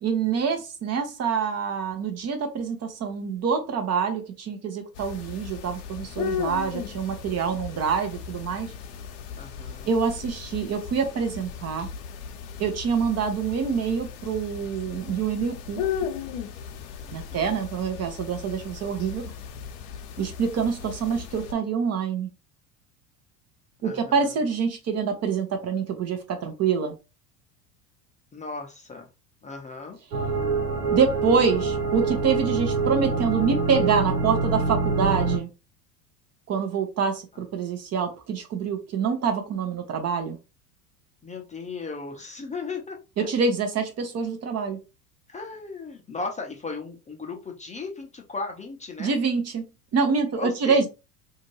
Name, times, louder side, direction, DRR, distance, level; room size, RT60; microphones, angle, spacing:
voice 1, 0.0-8.7 9.9-11.9 12.6-15.9 17.1-19.2 20.2-22.3 23.8-27.0 30.9-35.5 36.5-40.4 43.2-44.8 49.0-49.6 49.9-50.9, right 6 dB, 35° right, 0.8 m, -26 dB
sound 1, 4.9-21.5, left 7 dB, 60° left, 0.8 m, -36 dB
voice 2, 9.4-9.9 17.0-17.6 23.8-24.3 28.3-29.1 29.4-30.0 41.2-43.3 45.3-49.1 50.3-50.9, left 4 dB, 15° left, 0.6 m, -36 dB
sound 2, 30.1-35.4, right 4 dB, 80° right, 0.9 m, -25 dB
2.7 x 2.5 x 3.0 m
hypercardioid pair, 80°, 47 cm